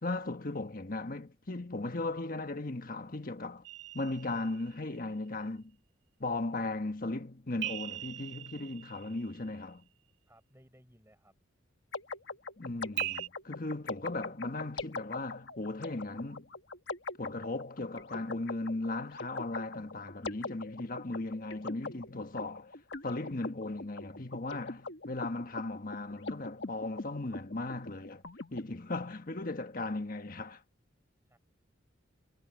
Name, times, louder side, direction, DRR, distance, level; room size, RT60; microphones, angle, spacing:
voice 1, 0.0-3.6 3.9-5.7 6.2-9.8 12.6-16.5 17.2-22.7 23.0-28.2 28.5-30.6, left 2 dB, 45° left, 1.3 m, -37 dB
sound 1, 3.6-5.0 7.6-9.6 13.0-13.3, right 14 dB, 60° right, 1.9 m, -40 dB
voice 2, 10.3-11.3 31.3-31.4, right 1 dB, 15° right, 7.1 m, -61 dB
sound 2, 11.9-28.6, left 3 dB, 60° left, 1.5 m, -42 dB
head